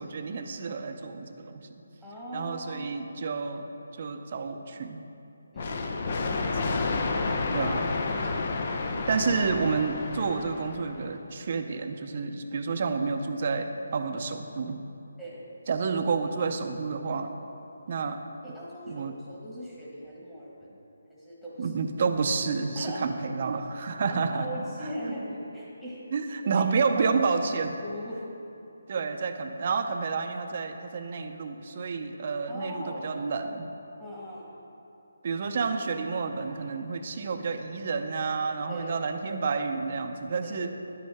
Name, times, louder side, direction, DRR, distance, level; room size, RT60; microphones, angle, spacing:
voice 1, 0.0-1.7 2.3-3.7 4.0-5.0 6.2-6.8 7.5-7.9 9.1-14.8 15.7-17.3 17.9-18.2 18.9-19.2 21.6-24.5 26.1-27.8 28.9-33.7 35.2-40.7, right 4 dB, 45° right, 7 dB, 0.6 m, -30 dB
voice 2, 2.0-2.8 5.5-6.5 15.2-15.4 18.4-20.8 21.1-21.7 22.7-23.1 24.1-26.0 26.6-26.7 27.0-28.3 32.5-33.1 34.0-34.5 38.7-39.0 40.4-40.6, equal, 5° left, -9 dB, 1.5 m, -40 dB
sound 1, 5.6-11.2, left 3 dB, 45° left, 0.6 m, -30 dB
10.5 x 7.7 x 3.5 m, 2.8 s
figure-of-eight pair, 160°, 0 cm